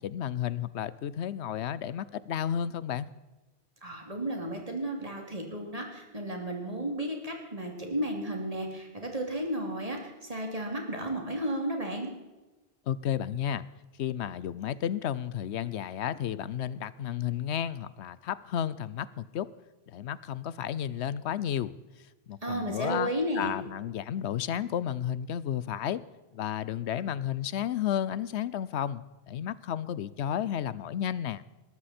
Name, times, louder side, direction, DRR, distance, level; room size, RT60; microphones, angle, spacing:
voice 1, 0.0-3.1 12.9-13.6 14.0-19.5 19.9-21.8 22.3-23.1 23.4-26.0 26.3-31.4, left 10 dB, 80° left, 18 dB, 0.9 m, -32 dB
voice 2, 3.8-12.1 22.4-23.5, right 1 dB, 35° right, 1 dB, 2.9 m, -33 dB
21.0 x 13.0 x 4.3 m, 1.1 s
omnidirectional pair, 1.1 m